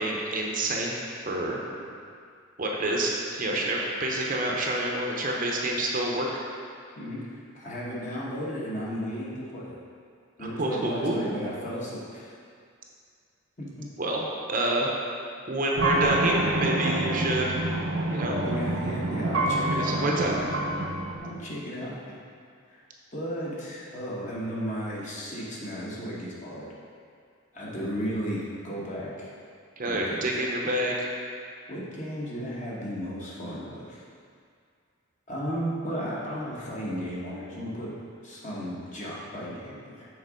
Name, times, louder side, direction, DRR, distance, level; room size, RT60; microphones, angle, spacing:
voice 1, 0.0-1.6 2.6-6.3 10.4-11.3 14.0-14.9 15.5-17.6 18.1-18.4 19.7-20.4 29.8-31.1, right 1 dB, 40° right, -1 dB, 0.7 m, -28 dB
voice 2, 6.9-9.8 10.4-12.3 13.6-13.9 18.3-20.5 21.2-22.2 22.7-22.8 23.1-26.7 27.5-29.3 29.9-30.2 31.7-34.0 35.3-37.9 38.2-40.1, equal, 35° left, -6 dB, 1.3 m, -34 dB
sound 1, 15.8-21.2, right 2 dB, 75° right, 0.7 m, -27 dB
6.6 x 3.9 x 5.1 m, 2.2 s
head